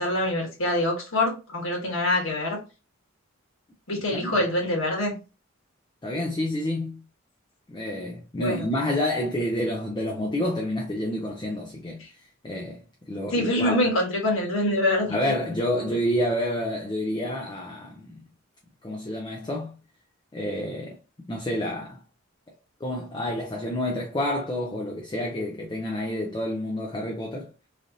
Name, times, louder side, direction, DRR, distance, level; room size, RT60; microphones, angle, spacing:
voice 1, 0.0-2.6 3.9-5.2 8.4-8.7 13.3-15.2, left 1 dB, 65° left, 1.4 m, -25 dB
voice 2, 6.0-7.0 7.7-12.8 13.1-13.8 15.1-18.2 18.8-19.8 20.3-21.0 21.3-22.0 22.8-27.5, left 1 dB, 20° left, 0.4 m, -29 dB
3.3 x 2.6 x 2.6 m
head